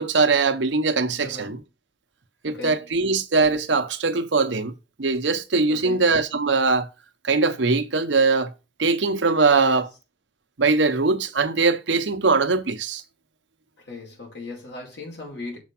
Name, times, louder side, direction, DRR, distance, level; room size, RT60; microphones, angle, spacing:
voice 1, 0.0-1.6 2.4-6.9 7.2-8.5 8.8-9.9 10.6-13.0, right 4 dB, 85° right, 1.0 m, -21 dB
voice 2, 1.2-1.5 2.5-2.8 5.7-6.0 9.5-9.8 13.9-15.6, left 2 dB, 80° left, 5.3 m, -38 dB
7.1 x 4.6 x 6.0 m
head